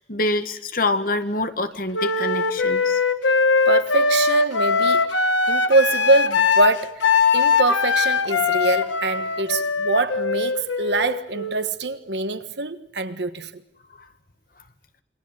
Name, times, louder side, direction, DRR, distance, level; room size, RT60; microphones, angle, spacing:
voice 1, 0.1-3.0, left 2 dB, 50° left, 1.8 m, -25 dB
Wind instrument woodwind instrument, 1.9-11.7, left 4 dB, 90° left, 1.7 m, -21 dB
voice 2, 3.7-5.2 5.5-7.0 7.3-13.6, right 2 dB, 65° right, 1.5 m, -24 dB
27.5 x 24.0 x 7.6 m
head